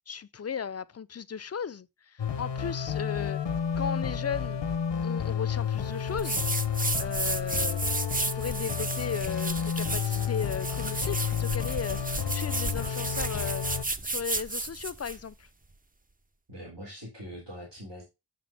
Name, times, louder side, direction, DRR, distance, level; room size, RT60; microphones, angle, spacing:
voice 1, 0.1-3.4 3.8-4.6 5.0-6.4 7.0-7.8 8.1-13.7 14.0-15.5, left 7 dB, 40° left, 0.4 m, -36 dB
sound 1, 2.2-13.8, left 7 dB, 90° left, 0.7 m, -31 dB
sound 2, 6.2-15.2, right 3 dB, 20° right, 0.5 m, -33 dB
voice 2, 16.5-18.0, equal, 75° right, 3.3 m, -42 dB
6.6 x 6.0 x 3.4 m
wide cardioid pair, 45°, 43 cm